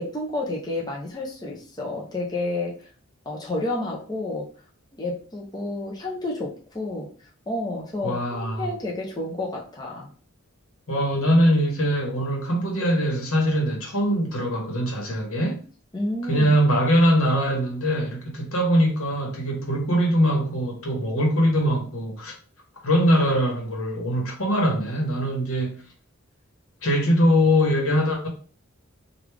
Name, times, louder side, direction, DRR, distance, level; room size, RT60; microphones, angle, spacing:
voice 1, 0.0-2.9 3.3-4.5 4.9-7.1 7.5-10.1 15.9-16.5, left 2 dB, 20° left, 0.7 m, -30 dB
voice 2, 8.0-8.7 10.9-15.6 16.3-22.3 22.8-25.8 26.8-28.3, equal, 80° left, 1.1 m, -22 dB
3.3 x 2.4 x 3.3 m
head